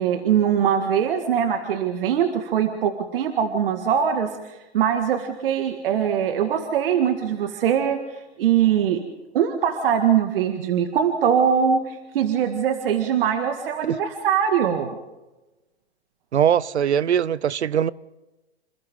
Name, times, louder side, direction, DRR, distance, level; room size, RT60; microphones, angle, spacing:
voice 1, 0.0-9.0 9.3-14.9, right 8 dB, 55° right, 2.0 m, -22 dB
voice 2, 16.3-17.9, right 9 dB, 85° right, 0.8 m, -21 dB
28.0 x 27.5 x 3.8 m
hypercardioid pair, 125°, 33 cm